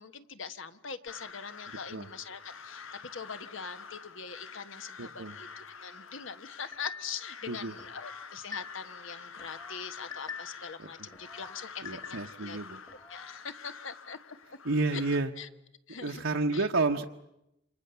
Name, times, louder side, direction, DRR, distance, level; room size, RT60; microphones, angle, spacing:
voice 1, 0.0-2.8 3.1-12.6 12.9-14.4 14.9-15.0 15.4-15.5 15.9-16.2 16.5-16.7, left 6 dB, 65° left, 11 dB, 1.4 m, -42 dB
Crow, 1.1-15.2, left 5 dB, 85° left, 1.6 m, -48 dB
voice 2, 5.0-5.4 7.5-7.7 10.8-10.9 11.8-12.8 14.6-15.3 15.9-17.0, right 3 dB, 70° right, 1 dB, 1.2 m, -30 dB
sound 1, 6.7-7.3 7.8-9.0 9.4-10.7 11.1-12.5 12.9-13.4, left 6 dB, 20° left, 1.7 m, -46 dB
29.0 x 26.5 x 7.0 m, 0.86 s
head